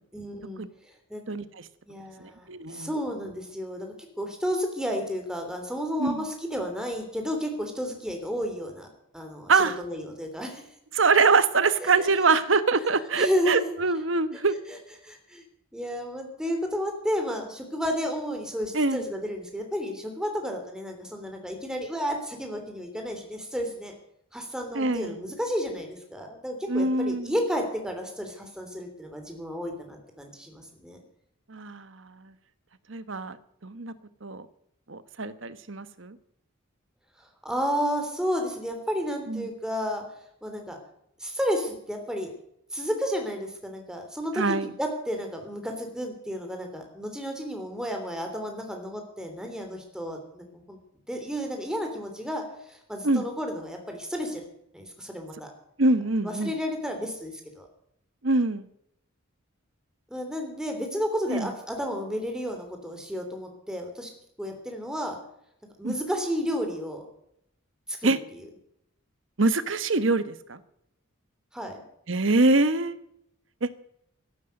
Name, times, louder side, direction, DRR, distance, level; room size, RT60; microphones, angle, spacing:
voice 1, 0.1-0.6 1.1-1.2 1.9-3.9 4.2-8.9 9.1-10.6 11.8-12.1 13.2-13.7 14.7-14.8 15.0-15.4 15.7-23.9 24.3-31.0 37.4-40.0 40.4-40.8 41.2-42.3 42.7-50.8 51.1-54.4 54.7-55.5 56.2-57.7 60.1-64.1 64.4-65.1 65.8-67.0 67.9-68.4 71.5-71.8, equal, 5° right, 3 dB, 3.2 m, -32 dB
voice 2, 1.3-1.6 2.2-2.9 6.0-6.2 9.5-9.8 10.9-14.5 18.7-19.0 24.7-25.1 26.7-27.3 31.5-31.9 32.9-33.4 33.6-33.9 34.2-34.5 34.9-36.2 39.3-39.5 44.4-44.7 53.0-53.2 55.8-56.5 58.2-58.6 61.3-61.5 65.8-65.9 68.0-68.2 69.4-70.6 72.1-73.0 73.6-73.7, right 3 dB, 60° right, 13 dB, 1.2 m, -24 dB
14.5 x 12.0 x 6.6 m, 0.74 s
head